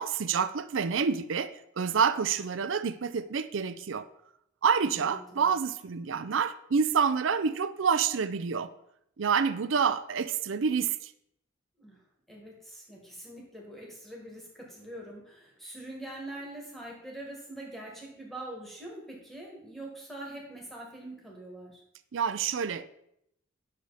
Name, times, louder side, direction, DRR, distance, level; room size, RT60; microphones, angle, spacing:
voice 1, 0.0-4.1 4.6-8.7 9.2-11.1 22.1-22.8, right 6 dB, 75° right, 0.5 m, -28 dB
voice 2, 4.9-5.4 11.8-21.8, right 1 dB, ahead, 1.8 m, -44 dB
9.3 x 6.4 x 4.1 m
head